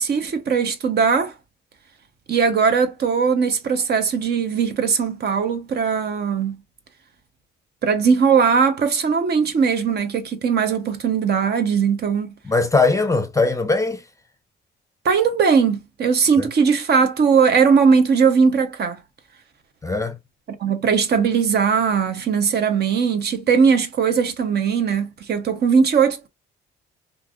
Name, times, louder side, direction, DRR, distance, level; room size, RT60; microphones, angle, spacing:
voice 1, 0.0-1.3 2.3-6.6 7.8-12.3 15.0-19.0 20.5-26.3, right 6 dB, 55° right, 0.8 m, -19 dB
voice 2, 12.4-14.0 16.4-16.5 19.8-20.2, left 3 dB, 15° left, 0.6 m, -20 dB
3.2 x 2.6 x 2.4 m
cardioid pair, 90°, 20 cm